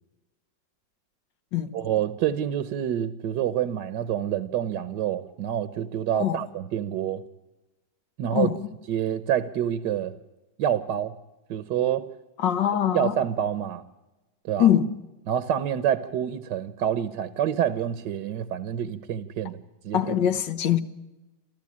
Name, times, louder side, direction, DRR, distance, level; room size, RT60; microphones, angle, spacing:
voice 1, 1.7-7.2 8.2-8.5 8.9-10.1 10.6-11.2 11.5-12.0 12.9-13.8 14.4-14.7 15.3-19.6 19.8-20.0, right 10 dB, 70° right, 1.4 m, -27 dB
voice 2, 12.4-13.2 14.6-14.9 19.9-20.8, left 10 dB, 75° left, 1.8 m, -23 dB
27.5 x 14.0 x 8.5 m
omnidirectional pair, 2.0 m